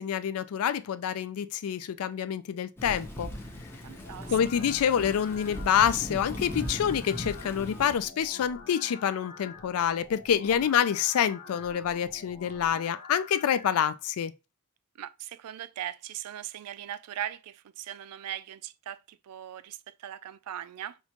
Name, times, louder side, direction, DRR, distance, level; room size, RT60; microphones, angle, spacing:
voice 1, 0.0-3.3 4.3-14.3, left 8 dB, 70° left, 0.3 m, -27 dB
Thunder / Rain, 2.8-8.0, equal, 10° left, 0.7 m, -38 dB
sound 1, 3.7-13.7, left 4 dB, 35° left, 1.0 m, -48 dB
voice 2, 3.8-4.4 8.7-9.0 15.0-21.0, right 11 dB, 85° right, 0.4 m, -39 dB
5.6 x 2.2 x 2.9 m
head